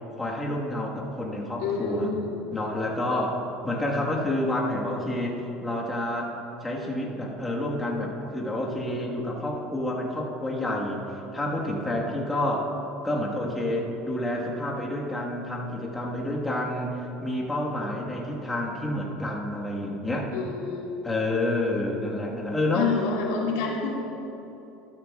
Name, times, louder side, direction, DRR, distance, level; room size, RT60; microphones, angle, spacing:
voice 1, 0.2-2.1 2.5-6.3 6.6-11.0 11.3-12.7 13.0-20.3 21.0-22.9, left 1 dB, 10° left, -3 dB, 1.4 m, -29 dB
voice 2, 1.6-2.3 20.3-20.9 22.7-23.9, left 4 dB, 80° left, -2 dB, 1.9 m, -28 dB
12.5 x 12.5 x 2.3 m, 3.0 s
supercardioid pair, 125°, 0 cm